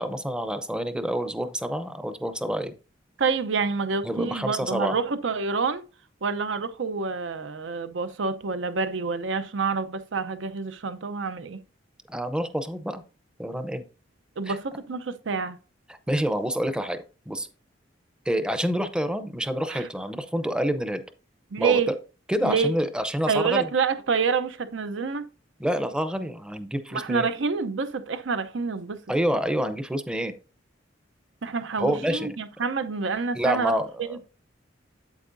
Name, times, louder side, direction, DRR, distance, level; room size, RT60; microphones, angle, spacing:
voice 1, 0.0-2.7 4.0-5.0 12.1-13.0 13.4-13.8 14.5-14.6 15.9-17.0 17.3-17.5 18.3-21.0 21.6-22.0 22.3-23.7 25.6-27.3 29.1-30.3 31.8-32.4 33.3-34.2, equal, 5° right, 0.6 m, -27 dB
voice 2, 3.2-5.8 6.2-11.6 14.4-15.6 19.7-19.8 21.5-21.9 22.4-22.7 23.3-25.3 26.9-29.0 31.4-33.7 34.0-34.2, right 5 dB, 75° right, 0.7 m, -27 dB
8.3 x 8.2 x 2.6 m
head